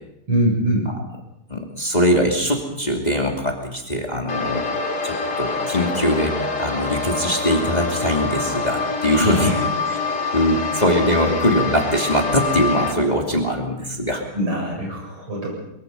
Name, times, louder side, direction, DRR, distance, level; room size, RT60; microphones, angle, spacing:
voice 1, 0.3-0.9 9.0-9.6 14.3-15.5, right 1 dB, 75° right, -1 dB, 8.7 m, -23 dB
voice 2, 1.5-4.6 5.0-9.5 9.9-14.2, equal, 20° left, 1 dB, 2.6 m, -21 dB
sound 1, 4.3-12.9, left 4 dB, 65° left, 4.3 m, -25 dB
23.0 x 22.5 x 5.5 m, 0.84 s
omnidirectional pair, 2.4 m